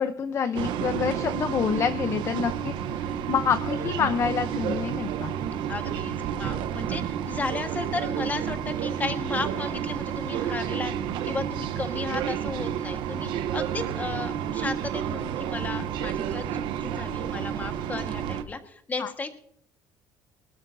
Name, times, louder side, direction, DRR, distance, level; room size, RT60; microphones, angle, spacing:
voice 1, 0.0-5.3 19.0-19.1, left 7 dB, 35° left, 9 dB, 0.7 m, -27 dB
sound 1, 0.5-18.4, right 9 dB, 70° right, 0.9 m, -30 dB
voice 2, 5.7-10.9 11.2-19.3, left 3 dB, 20° left, 6 dB, 1.5 m, -34 dB
23.5 x 13.0 x 2.7 m, 0.65 s
cardioid pair, 150°, 8 cm